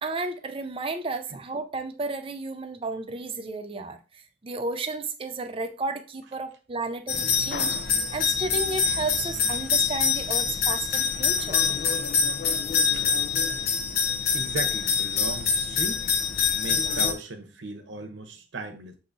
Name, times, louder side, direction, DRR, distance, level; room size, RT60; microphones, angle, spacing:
voice 1, 0.0-4.0 4.4-11.6 12.8-12.9, right 3 dB, 30° right, 0.5 m, -33 dB
sound 1, 7.1-17.1, left 6 dB, 55° left, 0.5 m, -25 dB
voice 2, 14.3-16.0 16.5-19.0, right 3 dB, 85° right, 0.8 m, -36 dB
6.7 x 2.8 x 2.6 m
head